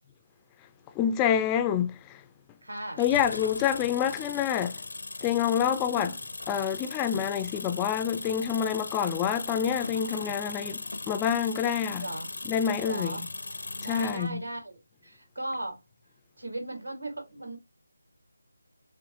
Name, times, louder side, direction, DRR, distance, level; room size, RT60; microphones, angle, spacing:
voice 1, 1.0-2.2 3.0-4.8 5.2-6.1 6.5-12.1 12.5-13.3 13.8-14.4, left 9 dB, 15° left, 0.3 m, -27 dB
voice 2, 2.6-3.0 5.9-6.1 12.0-12.3 12.8-13.2 13.8-15.8 16.4-17.6, right 1 dB, 80° right, 2.8 m, -37 dB
sound 1, 3.0-14.3, left 3 dB, 70° left, 0.5 m, -38 dB
6.0 x 2.4 x 2.6 m
figure-of-eight pair, 160°, 0 cm